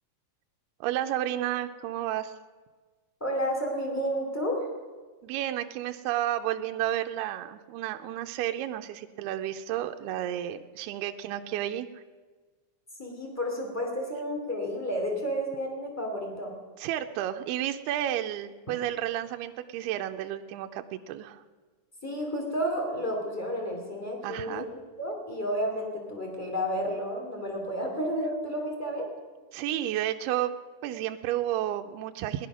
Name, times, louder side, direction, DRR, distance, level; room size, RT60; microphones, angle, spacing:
voice 1, 0.8-2.3 5.2-12.0 16.8-21.4 24.2-24.7 29.5-30.5 30.8-32.5, right 12 dB, 85° right, 6 dB, 2.3 m, -31 dB
voice 2, 3.2-4.7 13.0-16.5 22.0-29.1, equal, 10° left, 0 dB, 0.8 m, -31 dB
18.0 x 11.0 x 6.1 m, 1.4 s
omnidirectional pair, 5.2 m